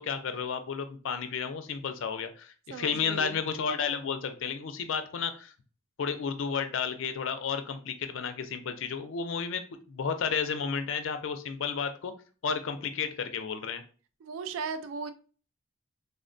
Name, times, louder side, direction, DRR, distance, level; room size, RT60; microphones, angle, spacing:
voice 1, 0.0-5.5 6.0-9.6 9.9-12.1 12.4-13.8, left 6 dB, 65° left, 0.4 m, -32 dB
voice 2, 2.7-3.4 14.2-15.1, right 5 dB, 70° right, 0.3 m, -36 dB
3.4 x 2.1 x 2.5 m
head